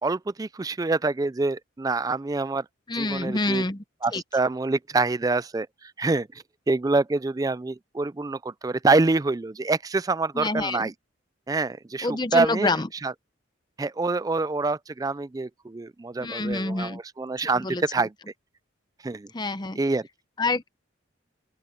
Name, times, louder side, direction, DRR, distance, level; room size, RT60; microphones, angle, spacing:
voice 1, 0.0-2.7 2.9-3.6 4.0-10.9 11.5-12.7 13.0-13.1 13.8-18.1 19.0-19.3 19.8-20.1, right 3 dB, 20° right, 0.3 m, -26 dB
voice 2, 2.9-3.8 4.1-4.2 10.3-10.9 12.0-12.9 16.2-17.0 17.6-18.1 19.3-19.8 20.4-20.7, left 2 dB, 20° left, 0.7 m, -27 dB
open air
head